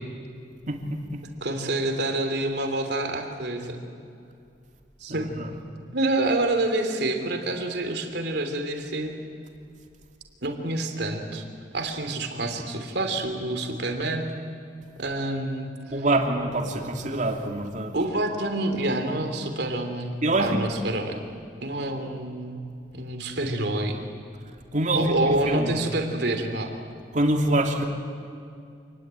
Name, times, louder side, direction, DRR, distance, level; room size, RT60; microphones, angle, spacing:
voice 1, 0.7-1.2 5.1-5.6 15.9-17.9 20.2-20.6 24.7-25.8 27.1-27.8, right 1 dB, 45° right, 3 dB, 2.9 m, -25 dB
voice 2, 1.4-3.8 5.0-5.3 5.9-9.1 10.4-11.4 11.7-14.2 15.0-15.7 17.9-20.1 20.4-21.2 21.6-22.7 22.9-24.0 24.9-26.7, right 2 dB, 65° right, 5 dB, 3.2 m, -27 dB
27.5 x 20.0 x 9.2 m, 2.4 s
head